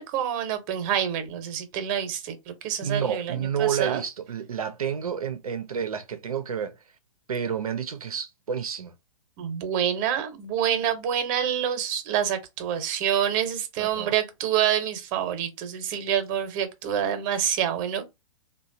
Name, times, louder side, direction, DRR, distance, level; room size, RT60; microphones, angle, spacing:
voice 1, 0.0-4.0 9.4-18.0, right 9 dB, 35° right, 0.7 m, -27 dB
voice 2, 2.7-6.8 7.3-8.9 13.8-14.1, right 7 dB, 90° right, 0.5 m, -30 dB
3.1 x 2.2 x 2.5 m
hypercardioid pair, 125°, 18 cm